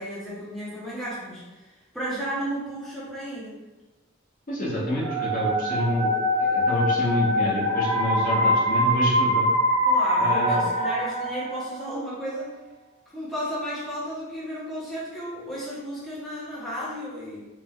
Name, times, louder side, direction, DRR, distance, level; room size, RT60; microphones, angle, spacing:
voice 1, 0.0-3.6 9.9-12.5 13.1-17.5, equal, ahead, -9 dB, 0.5 m, -33 dB
voice 2, 4.5-9.5 10.2-10.7, left 1 dB, 40° left, -5 dB, 0.7 m, -28 dB
sound 1, 5.0-11.8, equal, 90° right, 0.8 m, -23 dB
3.2 x 2.1 x 2.2 m, 1.1 s
head